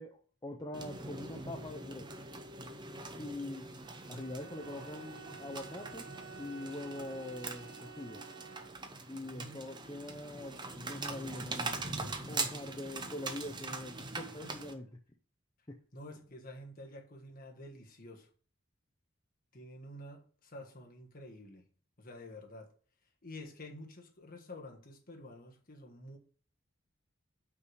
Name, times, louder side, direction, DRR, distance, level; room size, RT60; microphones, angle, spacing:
voice 1, 0.0-2.1 3.2-3.7 4.1-6.1 6.4-8.2 9.1-14.9 15.7-15.8, left 1 dB, 20° left, 0.5 m, -43 dB
sound 1, 0.7-14.7, right 3 dB, 20° right, 0.7 m, -42 dB
Bowed string instrument, 3.8-9.1, right 5 dB, 75° right, 2.2 m, -52 dB
voice 2, 9.2-9.6 12.7-12.8 14.4-14.7 15.9-18.3 19.5-21.7 22.0-22.7 23.2-26.2, left 1 dB, 40° left, 1.4 m, -49 dB
5.8 x 4.8 x 6.3 m
head